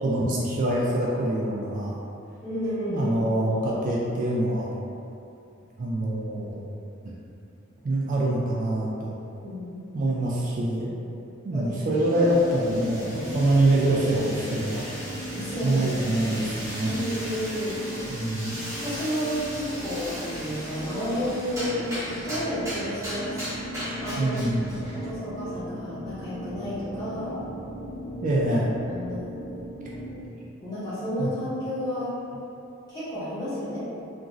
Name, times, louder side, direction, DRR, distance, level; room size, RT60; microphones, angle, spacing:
voice 1, 0.0-1.9 2.9-4.7 5.8-6.6 7.0-7.1 7.8-9.1 9.9-10.9 11.4-14.9 15.6-16.9 18.1-18.5 24.2-24.7 28.2-28.7 31.2-31.3, right 1 dB, 40° right, -5 dB, 0.3 m, -25 dB
voice 2, 2.4-3.1 9.4-10.0 11.5-11.7 12.1-12.3 12.6-13.4 15.3-16.2 16.9-17.8 18.8-23.5 24.0-24.4 24.9-27.4 28.9-29.3 30.6-32.1 32.9-33.8, equal, 20° left, -14 dB, 1.3 m, -32 dB
sound 1, 11.9-25.0, equal, 15° right, 0.9 m, -38 dB
sound 2, 12.3-30.3, equal, 70° left, 1.3 m, -38 dB
2.9 x 2.5 x 2.4 m, 2.7 s
head